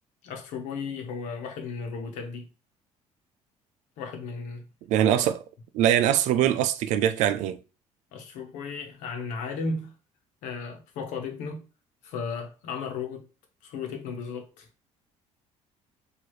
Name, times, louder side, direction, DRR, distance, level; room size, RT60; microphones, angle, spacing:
voice 1, 0.2-2.5 4.0-4.6 5.1-5.2 8.1-9.9 10.4-11.6 12.0-13.2 13.6-14.7, left 4 dB, 85° left, 1.1 m, -35 dB
voice 2, 4.9-5.4 5.7-7.6, right 10 dB, 75° right, 0.5 m, -22 dB
4.5 x 2.7 x 3.1 m
cardioid pair, 160°, 12 cm